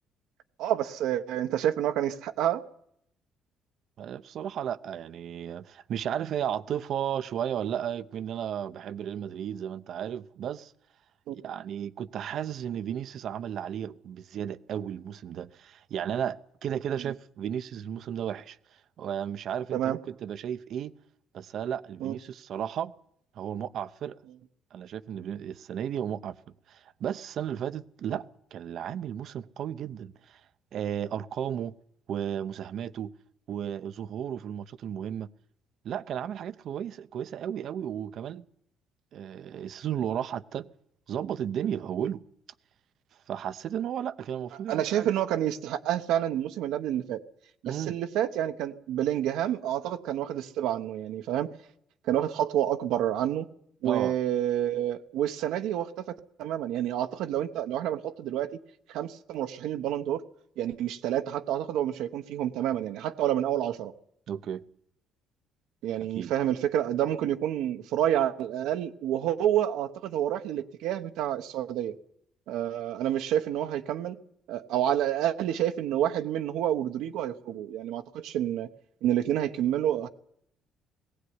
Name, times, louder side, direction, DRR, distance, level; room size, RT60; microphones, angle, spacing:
voice 1, 0.6-2.6 11.3-11.4 17.0-17.1 19.7-20.0 22.0-22.2 28.1-28.2 44.7-47.2 47.6-51.5 52.1-53.5 53.8-58.5 58.9-60.2 60.6-63.9 65.8-72.0 72.5-74.2 74.5-78.7 79.0-80.1, right 11 dB, 80° right, 1.1 m, -29 dB
voice 2, 4.0-10.7 11.3-18.6 19.0-20.9 21.3-22.9 23.3-24.2 24.7-26.4 26.7-28.2 28.5-30.4 30.7-31.7 32.1-33.1 33.5-35.3 35.8-38.4 39.1-40.7 41.1-42.2 43.3-45.1 47.6-48.0 53.8-54.1 64.3-64.6 66.1-66.3, right 9 dB, 60° right, 0.8 m, -34 dB
18.5 x 16.5 x 9.6 m
cardioid pair, 95°, 0 cm